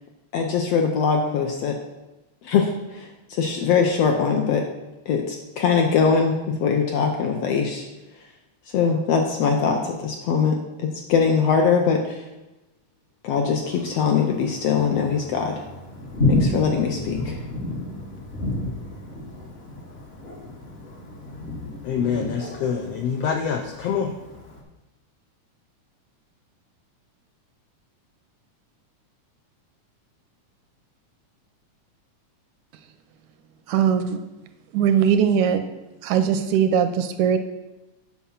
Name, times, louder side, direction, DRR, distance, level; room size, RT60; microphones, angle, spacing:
voice 1, 0.3-1.8 2.4-4.7 5.1-7.9 8.7-12.2 13.2-15.6 16.3-17.4, left 6 dB, 75° left, 3 dB, 1.5 m, -22 dB
Thunder, 13.6-24.6, left 2 dB, 50° left, 0.7 m, -31 dB
voice 2, 21.8-24.1, left 7 dB, 90° left, 4 dB, 1.4 m, -25 dB
voice 3, 33.7-34.2 34.7-35.6 36.0-37.4, right 8 dB, 80° right, 9 dB, 1.9 m, -20 dB
8.5 x 5.9 x 5.6 m, 1.0 s
omnidirectional pair, 3.6 m